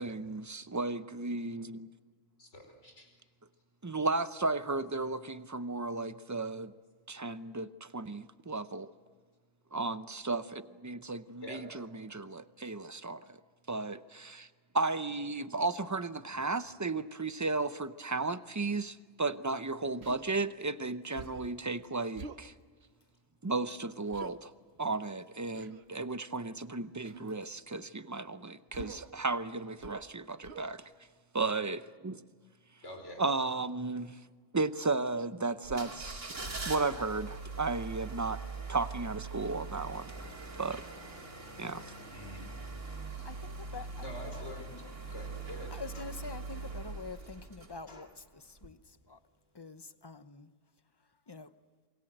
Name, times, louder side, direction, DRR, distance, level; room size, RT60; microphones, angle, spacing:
voice 1, 0.0-1.9 3.8-6.7 7.1-8.9 9.7-13.4 13.7-14.5 14.7-22.5 23.4-24.5 24.8-30.9 31.3-32.3 33.2-34.2 34.5-36.4 36.7-38.4 38.7-40.1 40.6-40.8 41.6-41.9, right 3 dB, 20° right, 0.5 m, -34 dB
voice 2, 2.4-3.1 11.4-11.9 15.4-15.5 16.3-16.4 32.8-33.2 42.1-42.4 42.7-43.3 44.0-44.7 45.1-45.9, equal, 70° left, 5.2 m, -47 dB
Human voice, 20.0-20.3 21.2-21.5 22.2-22.5 24.1-24.3 25.5-25.9 27.1-27.3 28.7-29.1 29.8-30.1 30.4-30.7, right 5 dB, 60° right, 1.2 m, -46 dB
sound 1, 35.6-48.1 48.6-48.7, right 4 dB, 80° right, 3.3 m, -42 dB
voice 3, 43.2-44.1 45.7-49.2 49.5-50.5 51.3-51.5, left 4 dB, 25° left, 0.8 m, -46 dB
sound 2, 44.3-44.8 45.9-46.6 47.9-48.3, left 2 dB, 55° left, 2.5 m, -55 dB
28.0 x 23.0 x 7.9 m
omnidirectional pair, 1.3 m